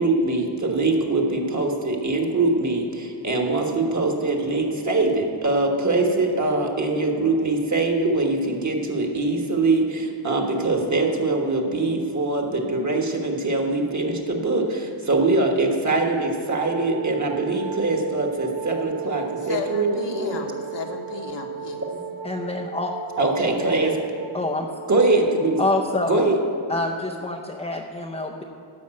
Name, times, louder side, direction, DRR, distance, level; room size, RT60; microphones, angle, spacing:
voice 1, 0.0-20.4 23.2-23.9 24.9-25.6 26.0-26.4, right 2 dB, 40° right, 1 dB, 1.5 m, -23 dB
Wind instrument woodwind instrument, 16.5-26.4, right 7 dB, 70° right, 3.1 m, -35 dB
voice 2, 19.4-21.8, left 5 dB, 65° left, 2 dB, 1.3 m, -33 dB
voice 3, 22.2-22.9 24.3-24.7 25.6-26.2 26.7-28.4, left 2 dB, 15° left, 1 dB, 0.6 m, -26 dB
13.0 x 5.4 x 7.6 m, 2.6 s
wide cardioid pair, 120°, 47 cm